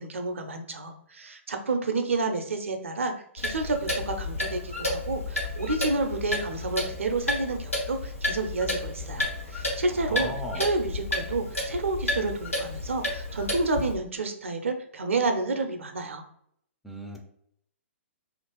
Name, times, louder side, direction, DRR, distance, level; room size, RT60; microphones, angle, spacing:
voice 1, 0.0-16.2, right 3 dB, 70° right, 6 dB, 0.5 m, -30 dB
Clock, 3.4-13.9, left 2 dB, 85° left, 0.9 m, -31 dB
voice 2, 10.1-10.7 16.8-17.2, equal, ahead, 0 dB, 0.3 m, -36 dB
2.8 x 2.5 x 3.0 m, 0.69 s
figure-of-eight pair, 115°, 7 cm